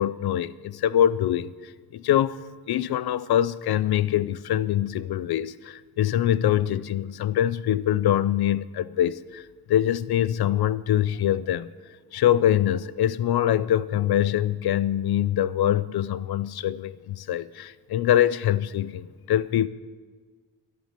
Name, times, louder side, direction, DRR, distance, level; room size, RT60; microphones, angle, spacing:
voice 1, 0.0-2.4 2.7-11.7 12.1-19.7, left 11 dB, 70° left, 0.7 m, -24 dB
13.0 x 11.0 x 7.5 m
cardioid pair, 70°, 40 cm